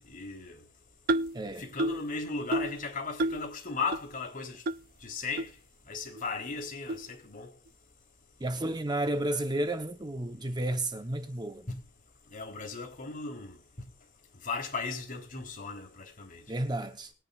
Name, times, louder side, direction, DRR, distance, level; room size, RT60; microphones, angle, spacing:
voice 1, 0.1-0.6 1.6-4.6 5.0-5.5 5.9-7.5 11.7-11.8 12.3-13.6 14.4-16.4, left 4 dB, 40° left, 3.7 m, -36 dB
sound 1, 1.1-1.4 1.8-2.1 2.5-2.8 3.2-3.5 3.9-4.0 4.7-4.8 5.4-5.5 6.2-6.3 6.9-7.1, right 2 dB, 45° right, 0.6 m, -29 dB
voice 2, 1.3-1.7 8.4-11.7 16.5-17.1, right 1 dB, 20° right, 0.9 m, -32 dB
21.0 x 10.0 x 2.5 m
head